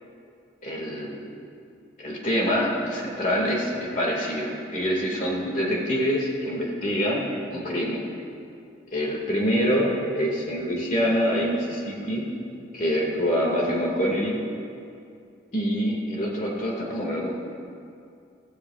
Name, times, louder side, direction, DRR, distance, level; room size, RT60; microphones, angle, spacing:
voice 1, 0.6-1.2 2.0-8.0 8.9-12.3 12.7-14.4 15.5-17.3, equal, 40° left, -2 dB, 2.1 m, -25 dB
15.5 x 15.0 x 2.4 m, 2.5 s
head